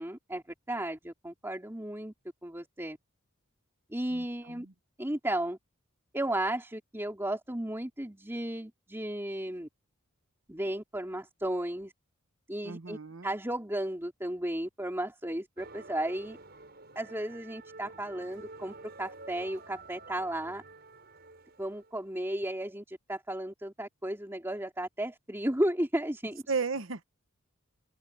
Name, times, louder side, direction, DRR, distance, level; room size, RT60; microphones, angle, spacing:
voice 1, 0.0-2.1 2.4-3.0 3.9-4.7 5.0-5.6 6.1-9.7 10.5-11.9 12.5-13.0 13.2-16.4 16.9-20.6 21.6-26.4, right 1 dB, 10° right, 2.9 m, -34 dB
voice 2, 4.1-4.7 12.6-13.3 26.5-27.0, right 5 dB, 65° right, 1.1 m, -35 dB
sound 1, 15.6-22.1, right 3 dB, 50° right, 7.0 m, -50 dB
head